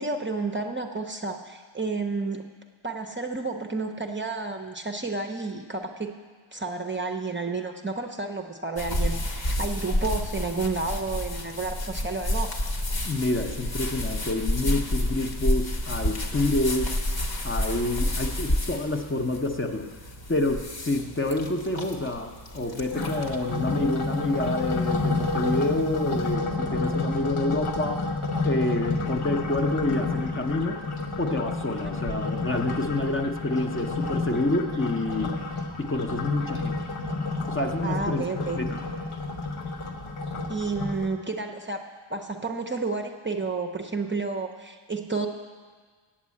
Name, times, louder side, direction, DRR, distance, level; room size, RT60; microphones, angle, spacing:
voice 1, 0.0-2.4 2.8-6.1 6.5-12.5 37.8-38.6 40.5-41.8 42.1-45.3, right 3 dB, 25° right, 3 dB, 0.6 m, -31 dB
sound 1, 8.8-26.3, left 1 dB, 50° left, 1.2 m, -31 dB
voice 2, 13.1-17.0 17.4-19.9 20.3-28.1 28.4-30.8 31.2-35.3 35.8-36.8 37.5-38.8, left 2 dB, 25° left, 4 dB, 0.7 m, -28 dB
sound 2, 22.9-41.1, left 3 dB, 85° left, 1.1 m, -30 dB
8.7 x 7.3 x 8.4 m, 1.5 s
wide cardioid pair, 100°, 49 cm